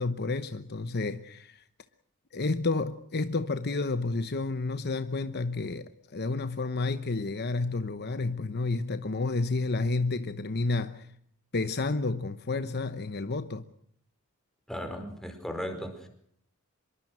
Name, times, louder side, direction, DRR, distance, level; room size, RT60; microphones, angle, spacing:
voice 1, 0.0-1.6 2.3-11.1 11.5-13.6, left 3 dB, 50° left, 0.9 m, -30 dB
voice 2, 14.7-16.1, equal, ahead, 4.6 m, -36 dB
25.5 x 22.5 x 6.3 m
head